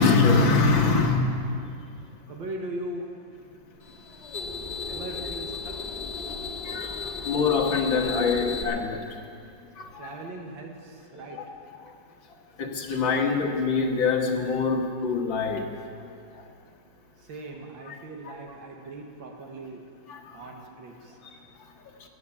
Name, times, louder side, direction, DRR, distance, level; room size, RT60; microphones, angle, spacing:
voice 1, 0.0-1.4 6.7-6.9 7.3-9.0 9.8-10.1 11.3-11.4 12.6-15.6 17.9-18.0 18.3-18.4 20.1-20.2, left 4 dB, 90° left, 1 dB, 2.2 m, -24 dB
voice 2, 2.3-3.1 4.9-6.0 10.0-11.4 17.2-19.8 20.3-21.2, right 1 dB, 90° right, 1 dB, 2.2 m, -39 dB
sound 1, 3.8-8.6, left 4 dB, 35° left, 1.6 m, -34 dB
16.0 x 9.6 x 7.3 m, 2.5 s
omnidirectional pair, 2.0 m